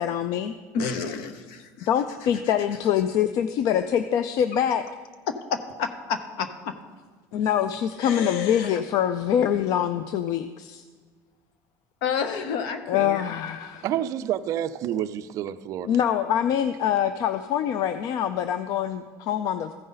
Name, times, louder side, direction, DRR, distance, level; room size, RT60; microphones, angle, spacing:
voice 1, 0.0-0.6 1.9-4.8 7.3-10.8 12.9-13.8 15.8-19.7, left 9 dB, 50° left, 11 dB, 0.4 m, -24 dB
voice 2, 0.7-1.9 5.3-6.7 8.0-8.8 12.0-13.2, left 6 dB, 75° left, 9 dB, 0.8 m, -30 dB
voice 3, 13.8-15.9, right 11 dB, 45° right, 12 dB, 0.3 m, -28 dB
14.5 x 5.3 x 3.9 m, 1.5 s
cardioid pair, 155°, 8 cm